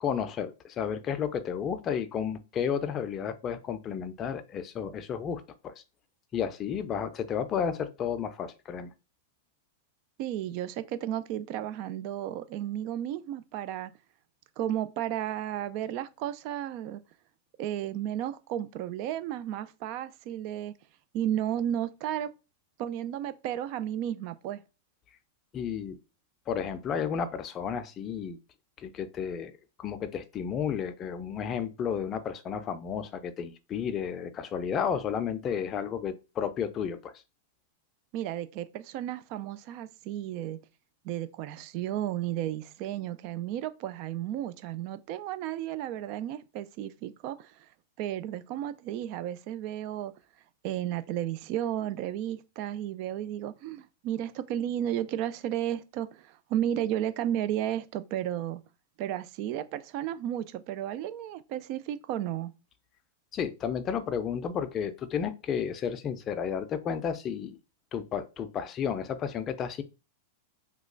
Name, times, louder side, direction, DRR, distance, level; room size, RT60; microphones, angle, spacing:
voice 1, 0.0-5.7 6.3-8.9 25.5-26.0 26.5-28.4 28.8-37.1 63.3-67.6 67.9-69.8, left 7 dB, 30° left, 0.5 m, -32 dB
voice 2, 10.2-13.9 14.6-17.0 17.6-20.7 21.1-22.3 22.8-24.6 38.1-40.6 41.0-47.7 48.0-50.1 50.6-58.6 59.0-62.5, right 11 dB, 50° right, 0.4 m, -33 dB
3.0 x 2.2 x 3.8 m
hypercardioid pair, 120°, 0 cm